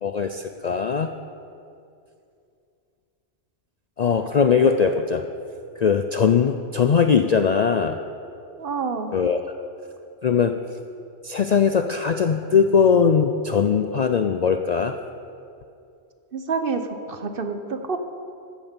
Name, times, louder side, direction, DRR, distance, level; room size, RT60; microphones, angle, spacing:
voice 1, 0.0-1.1 4.0-5.2 5.8-8.0 9.1-9.4 10.2-10.6 11.2-15.0, left 6 dB, 55° left, 7 dB, 0.5 m, -20 dB
voice 2, 8.6-9.1 16.3-18.0, right 4 dB, 55° right, 7 dB, 1.0 m, -28 dB
13.5 x 8.6 x 7.3 m, 2.5 s
omnidirectional pair, 1.2 m